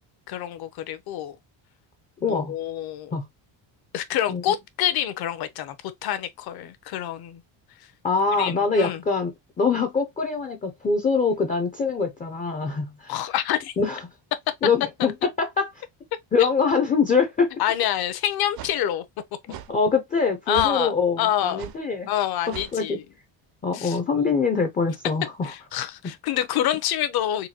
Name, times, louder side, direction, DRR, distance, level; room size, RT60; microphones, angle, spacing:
voice 1, 0.3-1.4 2.2-3.2 3.9-5.8 6.0-7.4 8.4-9.0 13.1-13.7 15.0-15.1 16.4-16.5 17.6-19.0 20.5-21.7 22.1-23.0 23.7-24.0 25.4-27.5, left 11 dB, 55° left, 0.7 m, -27 dB
voice 2, 2.2-2.5 3.1-3.3 4.3-4.4 8.0-9.3 9.6-13.2 13.8-14.0 14.6-15.8 16.3-17.5 19.7-22.1 22.5-23.0 23.6-25.5, left 5 dB, 20° left, 0.3 m, -24 dB
sound 1, 17.7-17.8 18.5-18.8 19.5-19.7 20.5-20.8 21.6-21.8 22.5-22.8, right 13 dB, 55° right, 0.5 m, -38 dB
3.9 x 2.2 x 2.7 m
cardioid pair, 155°, 46 cm